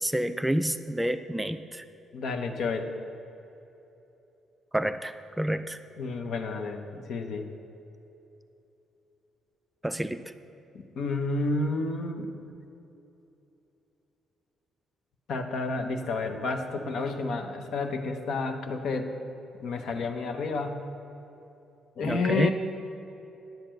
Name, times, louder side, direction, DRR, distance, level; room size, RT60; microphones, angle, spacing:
voice 1, 0.0-1.8 4.7-5.8 9.8-10.2 22.0-22.5, right 1 dB, 5° right, 10 dB, 0.3 m, -28 dB
voice 2, 2.1-2.9 6.0-7.5 10.7-12.4 15.3-19.1 19.6-20.8 22.0-22.5, left 3 dB, 70° left, 6 dB, 0.8 m, -30 dB
10.5 x 4.4 x 7.7 m, 3.0 s
cardioid pair, 90°, 0 cm